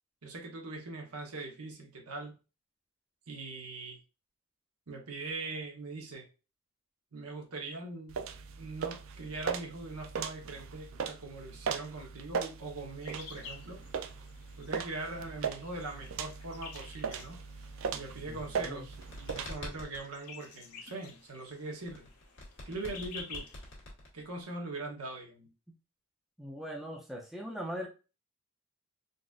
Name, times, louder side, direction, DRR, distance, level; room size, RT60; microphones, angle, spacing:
voice 1, 0.2-2.3 3.3-4.0 4.9-6.2 7.1-8.2 8.6-13.8 14.6-17.4 17.9-22.1 22.6-23.5 24.1-25.5, right 2 dB, 85° right, 1 dB, 1.0 m, -41 dB
sound 1, 8.1-19.5, right 6 dB, 60° right, 0.4 m, -39 dB
sound 2, 13.0-23.7, left 5 dB, 85° left, 0.7 m, -51 dB
voice 2, 18.3-18.9 26.4-27.9, equal, ahead, -1 dB, 0.5 m, -40 dB
sound 3, 18.4-20.1 21.9-24.4, left 1 dB, 55° left, 1.3 m, -45 dB
3.9 x 2.5 x 2.4 m, 0.31 s
head